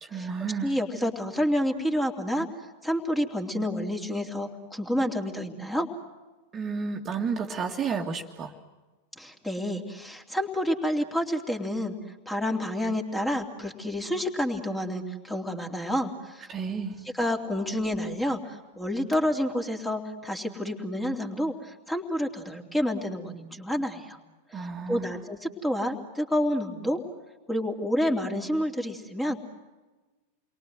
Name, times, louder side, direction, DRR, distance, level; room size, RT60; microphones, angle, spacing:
voice 1, 0.0-0.8 6.5-8.5 16.5-17.0 24.5-25.2, right 5 dB, 25° right, 2 dB, 2.0 m, -31 dB
voice 2, 0.6-2.5 2.8-5.9 9.2-12.0 12.2-16.5 17.2-24.2 24.5-24.6 24.9-27.0 27.5-29.4, equal, 5° left, 3 dB, 3.2 m, -29 dB
29.5 x 23.5 x 7.7 m, 1.2 s
figure-of-eight pair, 90°, 0 cm